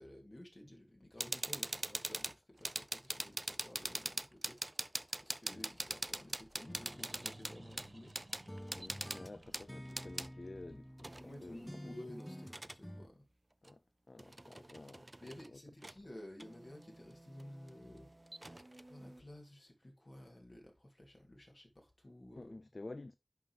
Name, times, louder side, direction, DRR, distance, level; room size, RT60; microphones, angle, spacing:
voice 1, 0.0-4.9 5.2-8.2 11.2-13.3 15.2-18.1 18.9-22.6, left 1 dB, 55° left, 2.7 m, -54 dB
sound 1, 1.2-10.3 11.0-12.8 13.6-13.7 14.2-15.5 15.8-16.0 16.4-19.2, right 1 dB, 40° right, 0.4 m, -43 dB
sound 2, 6.4-11.9, right 1 dB, 70° right, 1.4 m, -58 dB
sound 3, 6.7-8.2 8.5-11.3 11.7-13.1, equal, 10° left, 0.5 m, -50 dB
voice 2, 8.7-11.6 13.6-13.8 14.1-15.6 22.3-23.2, left 2 dB, 75° left, 0.3 m, -51 dB
11.0 x 3.9 x 3.3 m
wide cardioid pair, 45°, 0 cm